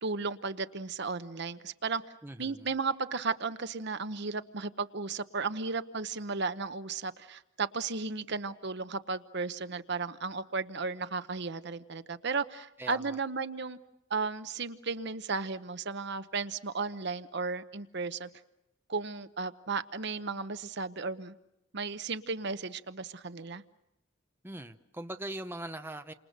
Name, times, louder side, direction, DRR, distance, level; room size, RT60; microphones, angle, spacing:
voice 1, 0.0-2.0 2.4-13.8 14.1-18.3 18.9-21.3 21.7-23.6, right 4 dB, 55° right, 0.9 m, -34 dB
voice 2, 2.2-2.7 12.8-13.2 24.4-26.1, right 1 dB, 10° right, 0.9 m, -41 dB
29.5 x 26.5 x 6.7 m
head